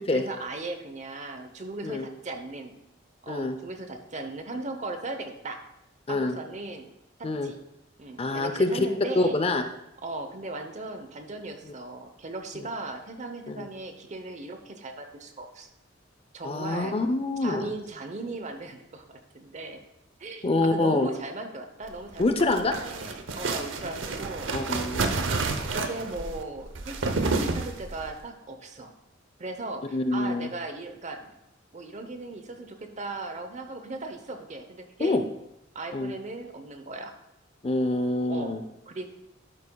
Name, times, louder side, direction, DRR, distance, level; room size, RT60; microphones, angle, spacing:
voice 1, 0.1-2.7 3.2-5.6 6.1-6.9 7.2-7.6 8.0-9.4 10.0-15.7 16.3-17.0 17.4-19.8 20.2-24.5 25.7-28.9 29.4-31.3 31.7-35.2 35.7-37.1 38.3-38.6 38.9-39.1, right 2 dB, 40° right, 6 dB, 0.9 m, -37 dB
voice 2, 8.2-8.9 9.2-9.6 13.5-13.7 16.4-17.7 20.4-21.1 22.2-22.8 24.5-25.1 29.9-30.5 35.0-35.2 35.9-36.1 37.6-38.6, left 2 dB, 30° left, 7 dB, 0.6 m, -26 dB
sound 1, 22.1-28.1, right 3 dB, 75° right, 0.8 m, -30 dB
11.0 x 8.7 x 2.3 m, 0.87 s
head